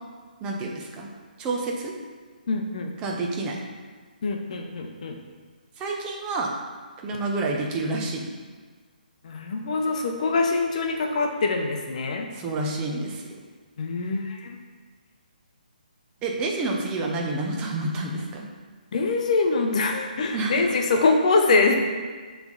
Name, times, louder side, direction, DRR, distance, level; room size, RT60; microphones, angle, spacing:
voice 1, 0.4-1.1 1.4-1.9 3.0-3.6 5.8-6.5 7.0-8.3 12.3-13.4 16.2-18.4 20.3-20.6, right 2 dB, 15° right, -1 dB, 0.7 m, -29 dB
voice 2, 2.5-2.9 4.2-5.2 9.2-12.3 13.8-14.6 18.9-21.8, left 3 dB, 50° left, 3 dB, 0.8 m, -24 dB
7.0 x 3.4 x 4.0 m, 1.5 s
hypercardioid pair, 150°, 5 cm